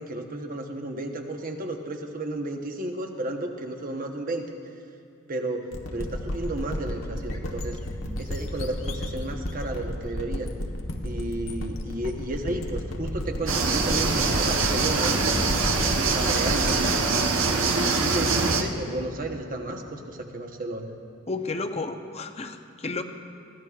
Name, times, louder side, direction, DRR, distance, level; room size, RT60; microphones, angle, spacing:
voice 1, 0.0-4.5 5.3-7.8 8.2-10.5 11.0-15.2 15.8-16.9 17.5-20.9, right 1 dB, 45° right, 3 dB, 1.0 m, -33 dB
sound 1, 5.7-18.3, left 1 dB, 85° left, 1.2 m, -33 dB
sound 2, 13.5-18.6, right 4 dB, 90° right, 1.0 m, -24 dB
voice 2, 21.3-23.0, left 3 dB, 35° left, 7 dB, 0.7 m, -32 dB
21.5 x 15.5 x 2.4 m, 2.4 s
head